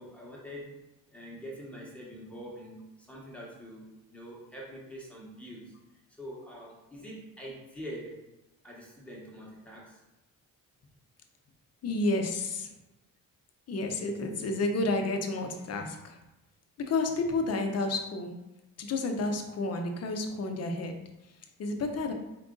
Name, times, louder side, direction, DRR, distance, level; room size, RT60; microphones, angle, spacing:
voice 1, 0.0-8.3 8.6-10.0, equal, 5° left, -5 dB, 1.0 m, -45 dB
voice 2, 11.8-12.7 13.7-16.2 16.8-18.4 18.8-21.0 21.6-22.1, left 2 dB, 45° left, 4 dB, 0.6 m, -30 dB
4.6 x 2.4 x 3.8 m, 0.97 s
cardioid pair, 120°, 35 cm